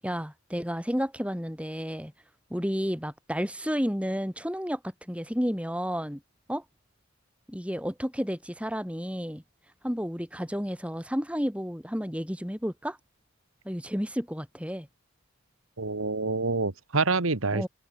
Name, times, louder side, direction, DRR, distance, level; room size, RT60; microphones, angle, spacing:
voice 1, 0.0-2.1 2.5-4.8 5.1-6.2 6.5-6.6 7.5-9.4 9.8-13.0 13.6-14.9 17.5-17.7, equal, 5° right, 6.6 m, -31 dB
voice 2, 15.8-17.7, right 3 dB, 80° right, 1.6 m, -27 dB
open air
head